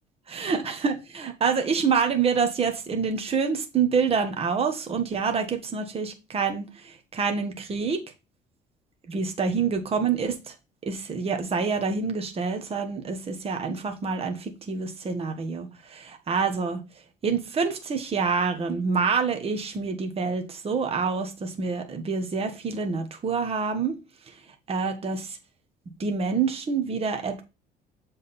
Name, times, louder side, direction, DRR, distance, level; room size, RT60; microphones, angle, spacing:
voice 1, 0.3-8.0 9.1-10.5 10.8-15.7 16.3-16.8 17.2-24.0 24.3-24.4 24.7-25.4 26.0-27.4, right 5 dB, 35° right, 1.3 m, -27 dB
7.4 x 3.8 x 4.2 m
cardioid pair, 110°, 17 cm